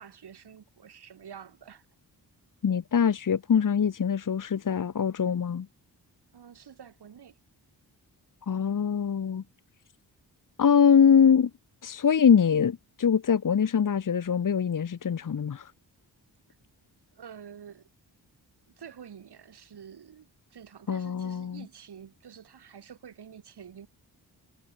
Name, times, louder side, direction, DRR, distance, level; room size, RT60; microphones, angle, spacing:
voice 1, 0.0-1.9 6.3-7.4 17.1-17.9 18.8-23.9, right 8 dB, 70° right, 2.8 m, -48 dB
voice 2, 2.6-5.7 8.5-9.4 10.6-11.5 11.8-15.7 20.9-21.6, left 7 dB, 50° left, 1.3 m, -23 dB
wide cardioid pair, 90°, 40 cm